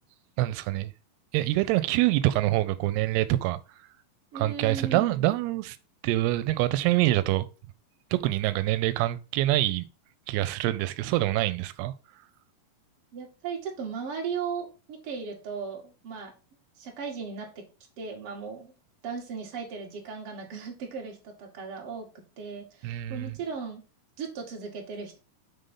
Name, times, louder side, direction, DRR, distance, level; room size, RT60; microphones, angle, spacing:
voice 1, 0.4-0.9 1.3-3.6 4.4-5.8 6.0-7.5 8.1-9.9 10.3-11.9 22.8-23.3, right 16 dB, 90° right, 2.6 m, -25 dB
voice 2, 4.3-5.3 13.1-16.3 16.8-17.5 18.0-18.7 19.0-22.1 22.4-23.8 24.2-25.2, right 5 dB, 40° right, 2.4 m, -36 dB
6.9 x 3.8 x 5.3 m
omnidirectional pair, 4.5 m